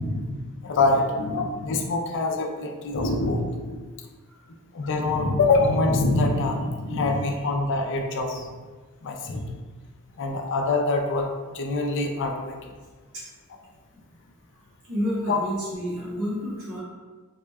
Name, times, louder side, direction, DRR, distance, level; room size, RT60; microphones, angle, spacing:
voice 1, 0.0-3.8 4.7-8.5 9.0-9.6 10.2-11.3 11.5-12.8 15.3-15.4, left 2 dB, 55° left, 3 dB, 0.4 m, -25 dB
voice 2, 14.8-16.8, equal, 90° right, -8 dB, 1.5 m, -29 dB
3.6 x 2.1 x 3.4 m, 1.4 s
head